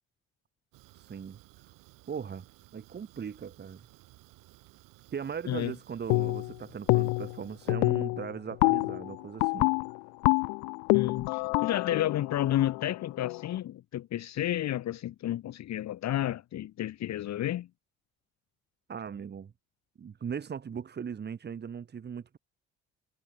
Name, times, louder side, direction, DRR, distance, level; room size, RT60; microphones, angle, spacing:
Fire, 0.7-7.7, right 22 dB, 80° right, 3.6 m, -57 dB
voice 1, 0.9-1.4 2.1-2.5 2.7-3.9 5.1-9.7 18.9-19.5 20.0-22.4, right 7 dB, 30° right, 0.8 m, -39 dB
sound 1, 6.1-6.5 6.9-7.4 7.7-13.5, left 36 dB, 80° left, 0.5 m, -27 dB
voice 2, 10.9-17.7, left 13 dB, 55° left, 0.9 m, -31 dB
hypercardioid pair, 55°, 32 cm